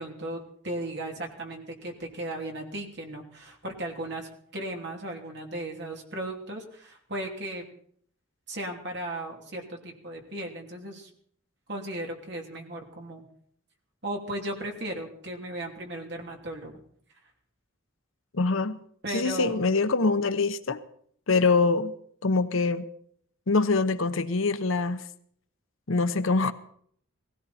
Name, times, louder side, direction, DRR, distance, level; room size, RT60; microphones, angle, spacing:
voice 1, 0.0-7.6 8.5-11.1 11.7-13.2 14.0-16.8 19.0-19.6, right 1 dB, 55° right, 1 dB, 2.9 m, -36 dB
voice 2, 18.3-18.8 19.1-20.8 21.3-21.9 22.2-22.9 23.5-25.0 25.9-26.5, left 3 dB, 75° left, 11 dB, 0.9 m, -24 dB
18.0 x 16.5 x 4.3 m, 0.62 s
head